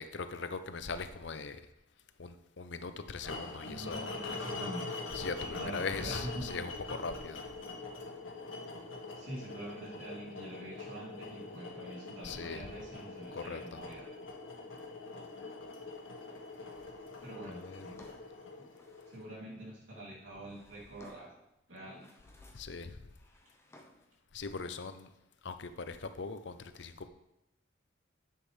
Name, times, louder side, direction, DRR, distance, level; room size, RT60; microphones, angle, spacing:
voice 1, 0.0-1.6 2.2-4.1 5.1-7.4 12.2-12.7 13.3-13.8 17.5-17.9 22.5-23.0 24.3-25.1 25.4-27.1, left 4 dB, 60° left, 10 dB, 0.6 m, -40 dB
sound 1, 3.2-19.3, left 3 dB, 90° left, 1.6 m, -44 dB
voice 2, 3.6-5.0 5.4-6.6 9.1-14.1 17.2-18.0 18.6-18.7 19.1-21.3 21.7-22.1, right 1 dB, 85° right, -4 dB, 2.9 m, -45 dB
Drawer open or close, 17.5-19.4 20.2-21.5 21.8-22.8 23.1-24.2, left 1 dB, 15° left, 0.9 m, -60 dB
10.0 x 7.6 x 3.3 m, 0.88 s
head